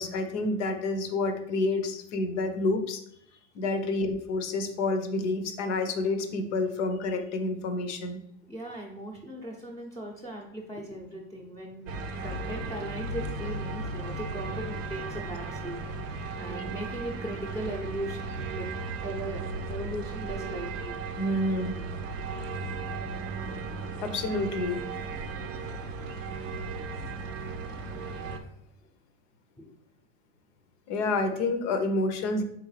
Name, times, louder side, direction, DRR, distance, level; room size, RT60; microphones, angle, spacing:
voice 1, 0.0-3.0 3.5-8.2 16.5-16.6 21.2-21.7 24.0-24.8 27.4-27.5 28.2-28.3 30.9-32.4, left 2 dB, 70° left, 8 dB, 0.8 m, -29 dB
voice 2, 8.5-11.9 12.2-18.2 18.5-18.8 19.0-19.4 19.7-21.0 29.6-29.7, right 1 dB, 10° left, -2 dB, 0.6 m, -38 dB
sound 1, 11.9-28.4, right 3 dB, 90° right, 0.6 m, -36 dB
3.9 x 3.6 x 3.2 m, 0.74 s
hypercardioid pair, 90°, 37 cm